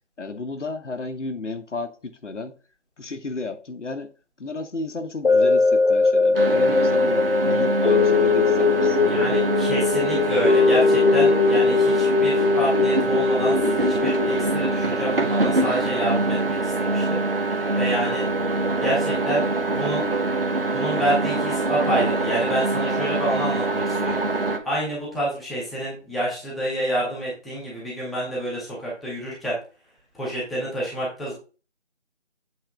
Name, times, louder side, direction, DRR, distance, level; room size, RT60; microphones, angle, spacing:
voice 1, 0.2-2.5 3.0-4.1 4.4-9.5, left 3 dB, 75° left, 8 dB, 1.1 m, -33 dB
sound 1, 5.2-15.6 16.1-16.2, left 4 dB, 55° left, 0.8 m, -20 dB
sound 2, 6.3-24.6, right 2 dB, 50° right, 0.9 m, -24 dB
voice 2, 8.9-17.2 17.8-18.3 18.8-20.1 20.7-24.2 24.6-29.6 30.1-31.3, right 1 dB, ahead, -7 dB, 0.7 m, -28 dB
8.0 x 3.3 x 4.9 m, 0.36 s
figure-of-eight pair, 175°, 36 cm